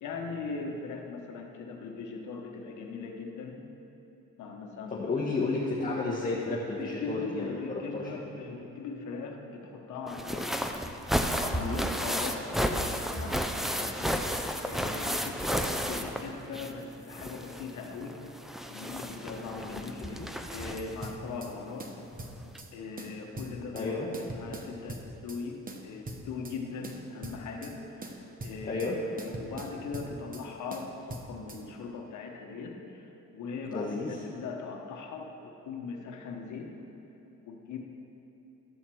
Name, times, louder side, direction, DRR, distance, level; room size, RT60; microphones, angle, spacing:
voice 1, 0.0-3.6 4.4-5.1 5.8-6.1 6.8-10.5 11.5-18.2 18.7-20.1 20.5-21.9 22.7-24.0 24.3-28.9 29.2-36.7 37.4-37.8, left 4 dB, 75° left, 1 dB, 1.1 m, -40 dB
voice 2, 4.9-8.1 11.6-11.8 20.0-20.3 23.7-24.1 28.7-29.0 33.6-34.1, left 3 dB, 25° left, -6 dB, 1.2 m, -32 dB
sound 1, 10.1-16.8 17.1-21.1 22.1-22.2 22.5-22.6, equal, ahead, 0.6 m, -32 dB
sound 2, 21.0-21.5 21.8-22.7 23.0-23.9 24.1-25.4 25.7-26.6 26.8-27.7 28.0-28.9 29.2-30.4 30.7-31.6, right 2 dB, 30° right, 1.0 m, -42 dB
12.5 x 4.2 x 7.7 m, 2.9 s
cardioid pair, 90°, 30 cm